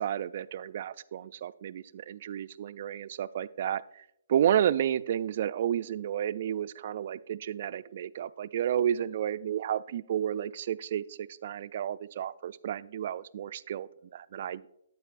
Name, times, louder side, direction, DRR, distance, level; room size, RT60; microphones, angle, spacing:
voice 1, 0.0-14.7, right 10 dB, 50° right, 15 dB, 0.3 m, -31 dB
9.0 x 8.2 x 2.5 m, 0.77 s
hypercardioid pair, 135°, 0 cm